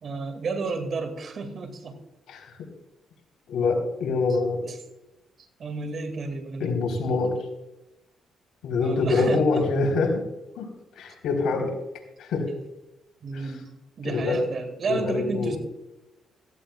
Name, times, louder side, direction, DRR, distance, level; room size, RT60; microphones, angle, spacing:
voice 1, 0.0-1.9 4.6-4.7 5.6-6.7 8.8-9.6 13.2-15.6, right 4 dB, 50° right, 6 dB, 2.3 m, -32 dB
voice 2, 3.5-4.6 6.6-7.3 8.6-10.2 10.6-10.7 11.0-11.7 12.2-12.5 13.3-13.5 14.0-14.4 14.9-15.6, left 3 dB, 75° left, 1 dB, 3.9 m, -25 dB
16.5 x 15.0 x 2.4 m, 0.99 s
cardioid pair, 90°, 0 cm